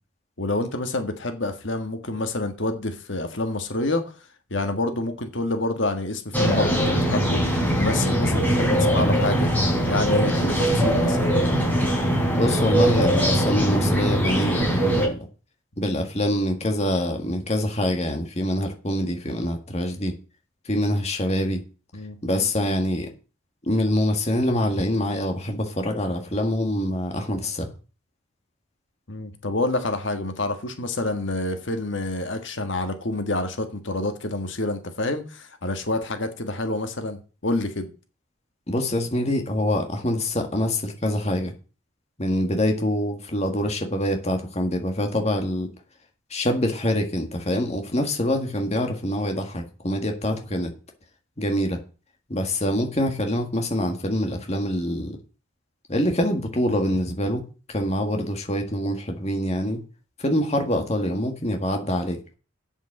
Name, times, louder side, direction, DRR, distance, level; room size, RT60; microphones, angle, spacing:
voice 1, 0.4-4.0 4.5-7.4 7.7-9.5 9.9-11.2 21.9-22.2 29.1-37.9, left 2 dB, 60° left, 1.6 m, -27 dB
sound 1, 6.3-15.1, equal, 10° left, 3.5 m, -21 dB
voice 2, 12.3-15.2 15.8-20.2 20.7-21.6 22.2-23.1 23.7-27.7 38.7-41.5 42.2-45.7 46.3-50.7 51.4-51.8 52.3-55.1 55.9-57.4 57.7-59.8 60.2-62.3, left 1 dB, 30° left, 1.7 m, -25 dB
8.2 x 7.3 x 7.6 m
head